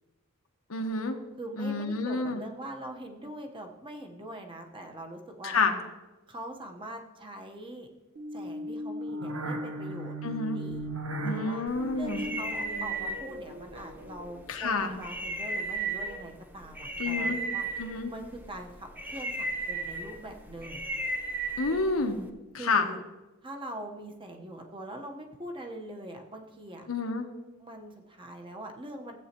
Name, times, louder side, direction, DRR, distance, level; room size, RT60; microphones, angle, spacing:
voice 1, 0.7-1.2 1.6-2.4 5.4-5.7 10.2-10.6 11.2-12.2 14.5-14.9 17.0-17.4 17.8-18.1 21.6-22.2 22.5-22.9 26.9-27.3, left 3 dB, 90° left, 5 dB, 1.1 m, -29 dB
voice 2, 1.4-5.6 6.3-7.9 8.3-10.2 10.5-10.9 11.2-11.6 11.9-17.7 18.1-20.8 22.6-23.0 23.4-26.9 27.6-29.2, right 1 dB, 25° right, 3 dB, 1.1 m, -43 dB
sound 1, 8.2-14.6, right 1 dB, 75° right, 1.2 m, -37 dB
sound 2, 11.7-22.3, right 2 dB, 10° right, 0.7 m, -36 dB
15.5 x 8.3 x 3.0 m, 1.1 s
head